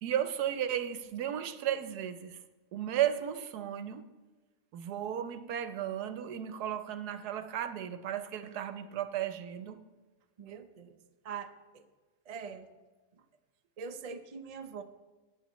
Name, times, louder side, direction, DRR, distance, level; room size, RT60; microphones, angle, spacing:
voice 1, 0.0-2.4 2.7-4.1 4.7-9.8, right 10 dB, 75° right, 10 dB, 1.2 m, -34 dB
voice 2, 10.4-11.0 11.2-11.9 12.3-12.7 13.8-14.8, right 6 dB, 50° right, 8 dB, 0.4 m, -43 dB
18.0 x 8.3 x 3.1 m, 1.3 s
omnidirectional pair, 1.7 m